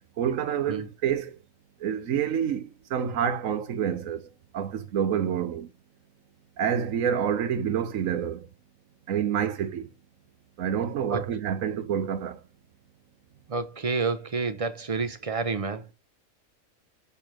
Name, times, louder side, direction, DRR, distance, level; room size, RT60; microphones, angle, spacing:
voice 1, 0.2-1.4 1.8-4.2 4.5-5.7 6.6-8.5 9.1-9.9 10.6-12.4, right 8 dB, 65° right, 1.1 m, -28 dB
voice 2, 13.5-15.8, right 4 dB, 35° right, 0.6 m, -29 dB
6.9 x 3.4 x 5.9 m
omnidirectional pair, 1.5 m